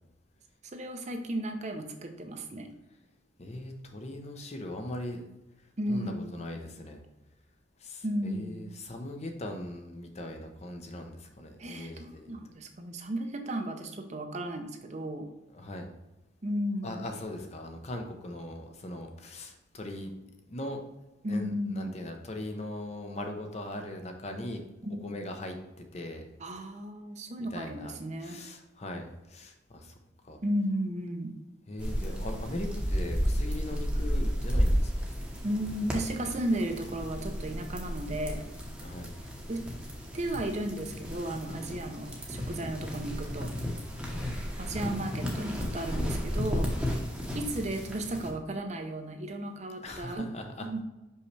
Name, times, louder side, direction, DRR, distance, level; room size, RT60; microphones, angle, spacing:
voice 1, 0.7-2.7 5.8-6.3 8.0-8.7 11.6-15.3 16.4-17.1 21.2-22.0 24.8-25.0 26.4-28.4 30.4-31.3 35.4-38.4 39.5-39.6 40.1-43.5 44.6-46.7 47.3-50.3 50.6-50.8, right 1 dB, 35° right, 5 dB, 0.6 m, -34 dB
voice 2, 3.4-5.2 5.9-7.0 7.8-12.3 15.5-15.9 16.8-20.1 20.5-20.8 21.3-24.6 25.0-25.6 25.9-26.3 27.4-27.9 28.2-30.0 30.2-30.4 31.7-34.9 38.8-39.1 41.7-41.8 44.0-44.3 49.8-50.7, left 1 dB, 35° left, 4 dB, 0.7 m, -40 dB
sound 1, 31.8-48.3, equal, 5° right, 0.9 m, -33 dB
5.5 x 5.4 x 3.2 m, 1.0 s
head